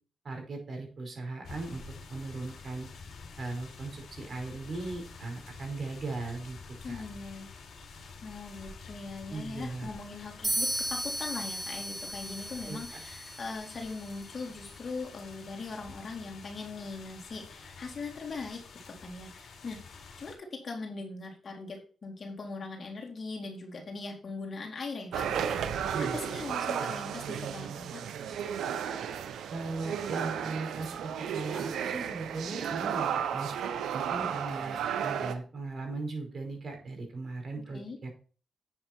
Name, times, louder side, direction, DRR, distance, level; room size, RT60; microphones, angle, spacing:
voice 1, 0.2-1.8 2.1-2.9 3.4-6.6 6.9-7.0 9.3-9.9 12.6-13.0 25.9-26.2 29.5-33.5 33.9-38.1, right 3 dB, 55° right, 2 dB, 5.3 m, -38 dB
sound 1, 1.4-20.4, left 4 dB, 70° left, 3.3 m, -49 dB
voice 2, 6.8-7.5 8.2-19.8 20.2-28.0 37.7-38.0, left 3 dB, 55° left, 0 dB, 4.0 m, -40 dB
sound 2, 10.4-14.2, right 1 dB, 25° right, 3.8 m, -35 dB
sound 3, 25.1-35.4, right 8 dB, 80° right, 0.9 m, -33 dB
9.0 x 7.7 x 4.5 m, 0.39 s
hypercardioid pair, 40°, 0 cm